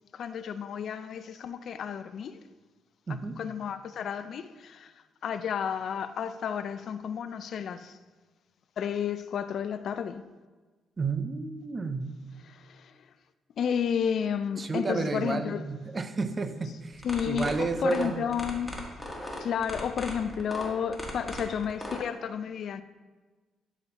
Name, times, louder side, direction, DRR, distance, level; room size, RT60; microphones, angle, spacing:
voice 1, 0.1-2.4 3.4-4.9 5.2-8.0 8.8-10.3 12.5-13.1 13.6-15.6 17.0-18.9 19.4-22.8, left 7 dB, 65° left, 0.4 m, -32 dB
voice 2, 3.1-3.4 11.0-12.2 14.6-18.2, right 4 dB, 35° right, 0.5 m, -31 dB
sound 1, 16.9-22.0, left 1 dB, 5° left, 1.4 m, -38 dB
11.0 x 4.0 x 2.9 m
cardioid pair, 90°, 0 cm